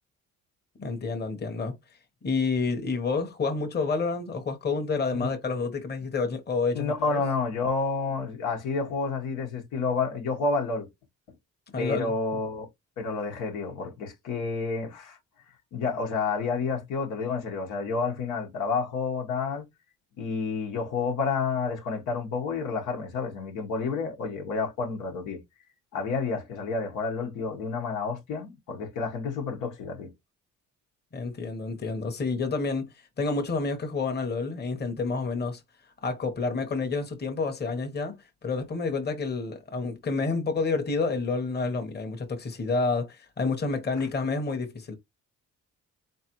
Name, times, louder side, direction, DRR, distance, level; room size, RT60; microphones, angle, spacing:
voice 1, 0.8-1.7 2.2-7.2 11.7-12.1 31.1-35.6 36.0-38.2 38.4-44.9, left 4 dB, 35° left, 1.1 m, -29 dB
voice 2, 6.7-10.9 11.8-12.7 13.0-15.2 15.7-19.6 20.2-25.4 25.9-30.1, left 4 dB, 90° left, 1.4 m, -30 dB
4.0 x 3.3 x 3.0 m
cardioid pair, 90°, 30 cm